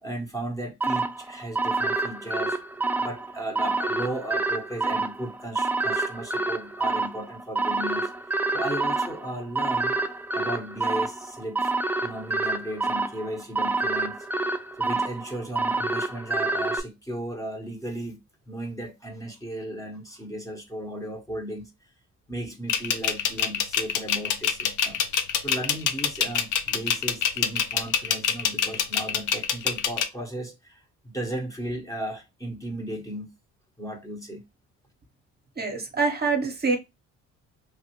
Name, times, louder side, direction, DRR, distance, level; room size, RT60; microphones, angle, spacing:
voice 1, 0.0-2.6 3.0-10.0 10.3-11.7 12.0-14.2 14.8-18.2 18.5-21.7 22.3-25.0 25.4-33.3 33.8-34.4, right 1 dB, 10° left, 0.8 m, -35 dB
sound 1, 0.8-16.8, right 3 dB, 5° right, 0.3 m, -28 dB
sound 2, 22.7-30.0, left 8 dB, 85° left, 0.6 m, -25 dB
voice 2, 35.6-36.8, right 4 dB, 30° right, 0.8 m, -25 dB
3.2 x 2.4 x 2.9 m
cardioid pair, 90°, 30 cm